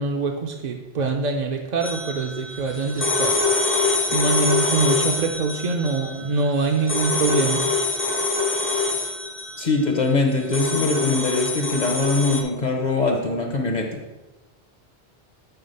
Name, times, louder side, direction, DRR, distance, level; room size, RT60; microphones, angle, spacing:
voice 1, 0.0-3.4 4.1-7.6, right 3 dB, 50° right, 2 dB, 0.6 m, -24 dB
sound 1, 1.8-12.4, left 3 dB, 15° left, 0.4 m, -25 dB
voice 2, 9.6-14.0, left 3 dB, 45° left, 2 dB, 0.8 m, -22 dB
8.0 x 3.6 x 5.3 m, 1.1 s
omnidirectional pair, 1.2 m